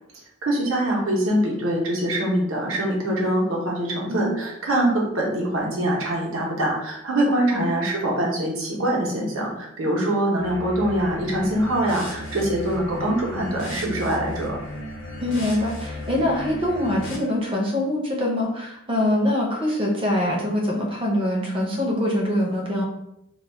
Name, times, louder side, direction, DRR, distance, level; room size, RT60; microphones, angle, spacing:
voice 1, 0.4-14.6, right 1 dB, 75° right, -2 dB, 0.8 m, -24 dB
sound 1, 10.3-17.2, left 1 dB, 55° left, 0.9 m, -35 dB
voice 2, 15.2-22.8, left 1 dB, 25° right, -1 dB, 0.6 m, -24 dB
2.3 x 2.2 x 3.3 m, 0.81 s
head